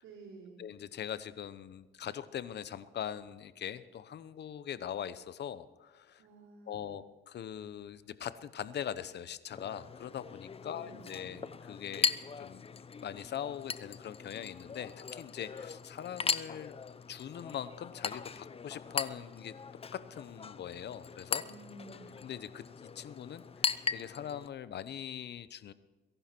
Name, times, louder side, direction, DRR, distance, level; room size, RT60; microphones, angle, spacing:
voice 1, 0.0-0.6 6.2-7.0 10.7-11.5 21.4-22.2, right 3 dB, 90° right, -3 dB, 5.2 m, -52 dB
voice 2, 0.6-6.2 6.7-12.6 13.0-16.7 17.1-19.5 19.9-21.4 22.2-25.7, left 9 dB, 60° left, 15 dB, 0.9 m, -42 dB
Chink clink, 9.5-24.5, left 5 dB, 30° left, 0.6 m, -39 dB
22.0 x 11.5 x 4.5 m, 1.3 s
cardioid pair, 90°, 20 cm